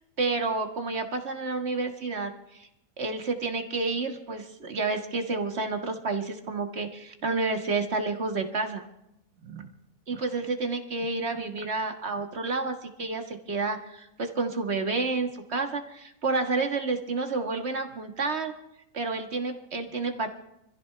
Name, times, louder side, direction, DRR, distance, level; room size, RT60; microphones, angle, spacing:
voice 1, 0.2-2.7 3.0-8.9 9.5-9.7 10.1-18.5 18.9-20.3, right 3 dB, 45° right, 5 dB, 1.8 m, -30 dB
26.0 x 15.0 x 3.4 m, 0.83 s
omnidirectional pair, 1.7 m